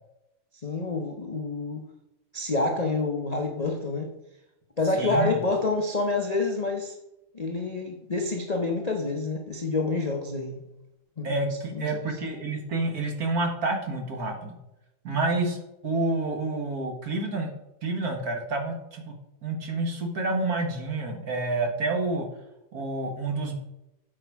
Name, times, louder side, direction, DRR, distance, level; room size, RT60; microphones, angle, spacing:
voice 1, 0.6-1.8 2.3-4.1 4.8-6.9 7.3-10.6 11.2-12.0, left 3 dB, 50° left, 2 dB, 0.4 m, -28 dB
voice 2, 5.0-5.4 11.2-14.6 15.0-15.6 15.8-17.5 17.8-19.1 19.4-22.3 22.7-23.5, right 2 dB, 50° right, 3 dB, 1.7 m, -28 dB
8.5 x 6.2 x 4.7 m, 0.89 s
omnidirectional pair, 2.2 m